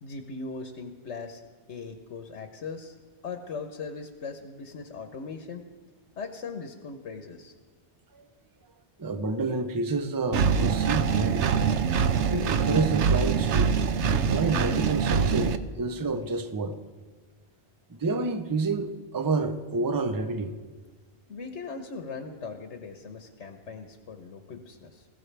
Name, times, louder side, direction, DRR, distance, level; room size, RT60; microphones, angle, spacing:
voice 1, 0.0-1.4 1.7-3.0 3.2-5.6 6.2-7.5 21.3-25.1, left 4 dB, 85° left, 1.3 m, -39 dB
voice 2, 9.0-11.5 12.3-13.8 14.3-16.8 17.9-20.5, right 3 dB, 20° right, 0.6 m, -29 dB
Engine, 10.3-15.6, right 6 dB, 85° right, 1.0 m, -24 dB
20.5 x 15.5 x 3.3 m
omnidirectional pair, 1.2 m